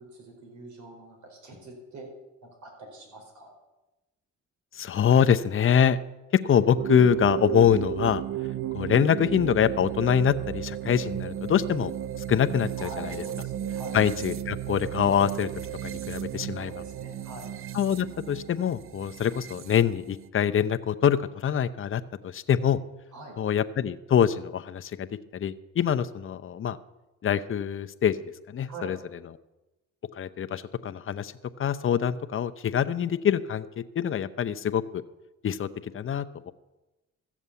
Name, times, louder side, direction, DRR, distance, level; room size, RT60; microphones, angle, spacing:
voice 1, 0.0-2.1 2.4-3.5 12.8-14.0 16.5-17.5 23.1-23.4 28.7-28.9, right 2 dB, 70° right, 1 dB, 4.9 m, -44 dB
voice 2, 4.7-6.0 6.4-8.2 8.7-11.9 12.3-13.2 13.9-15.5 15.8-16.7 17.7-22.8 23.4-25.1 25.3-26.8 27.2-28.2 28.5-29.0 30.2-31.3 31.6-35.0 35.4-36.5, left 8 dB, 45° left, 10 dB, 0.8 m, -25 dB
sound 1, 6.7-20.3, right 11 dB, 45° right, 0.6 m, -34 dB
14.0 x 7.3 x 8.3 m, 1.0 s
cardioid pair, 90°, 30 cm